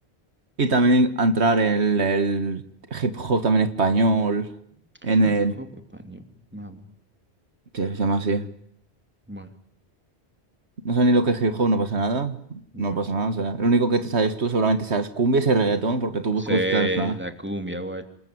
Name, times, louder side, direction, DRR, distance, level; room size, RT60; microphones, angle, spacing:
voice 1, 0.6-2.6 2.9-4.5 5.0-5.6 7.7-8.5 10.9-12.4 12.8-17.1, right 2 dB, 80° right, 10 dB, 1.9 m, -22 dB
voice 2, 5.2-5.7 5.9-6.2 6.5-6.8 9.3-9.5 12.7-13.0 16.4-18.0, right 1 dB, 10° right, 7 dB, 2.8 m, -30 dB
27.5 x 20.5 x 9.6 m, 0.69 s
omnidirectional pair, 1.1 m